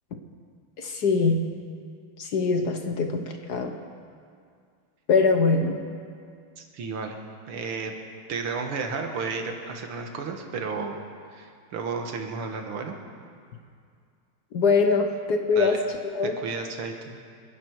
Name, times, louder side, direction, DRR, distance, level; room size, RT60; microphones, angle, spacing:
voice 1, 0.8-1.4 2.2-3.7 5.1-5.8 14.5-15.7 16.1-16.3, left 4 dB, 55° left, 5 dB, 1.4 m, -23 dB
voice 2, 6.6-7.2 7.5-7.9 8.3-11.0 11.3-13.0 15.6-15.8 16.4-17.2, right 4 dB, 80° right, 4 dB, 2.3 m, -32 dB
28.0 x 10.5 x 4.7 m, 2.2 s
omnidirectional pair, 2.4 m